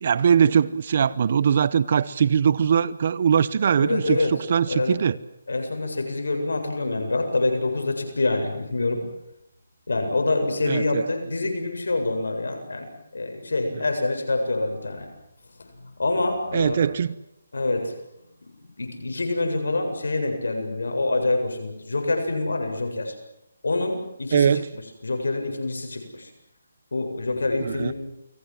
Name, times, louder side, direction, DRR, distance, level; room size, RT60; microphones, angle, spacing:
voice 1, 0.0-4.2 4.5-5.2 10.7-11.0 16.5-17.1 24.3-24.7 27.6-27.9, right 7 dB, 45° right, 0.9 m, -21 dB
voice 2, 3.8-4.3 4.7-5.0 5.5-9.0 9.9-15.1 15.5-16.9 17.5-17.9 18.8-23.1 23.6-24.6 25.0-26.3 26.9-27.9, left 2 dB, 85° left, 7.7 m, -26 dB
29.5 x 22.0 x 7.7 m
hypercardioid pair, 165°, 0 cm